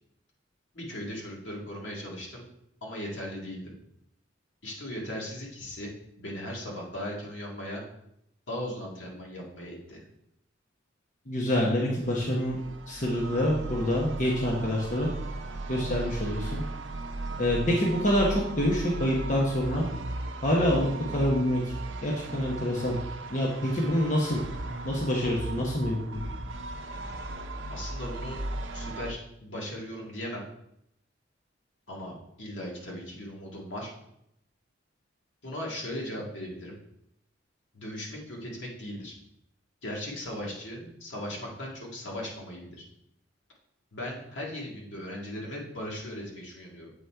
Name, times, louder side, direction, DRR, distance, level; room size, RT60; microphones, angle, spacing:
voice 1, 0.7-2.4 2.8-3.7 4.6-7.8 8.5-10.0 27.7-28.4 28.7-30.4 31.9-33.9 35.4-36.8 37.7-39.1 39.8-42.8 43.9-46.9, left 1 dB, 70° left, -2 dB, 2.0 m, -38 dB
voice 2, 11.3-12.6 12.9-15.1 15.7-16.6 17.4-19.9 20.4-21.7 22.0-23.0 23.3-24.4 24.8-26.3, equal, 40° left, -3 dB, 1.0 m, -26 dB
sound 1, 12.0-29.1, right 2 dB, 75° right, 0.6 m, -37 dB
7.9 x 4.0 x 4.5 m, 0.78 s
head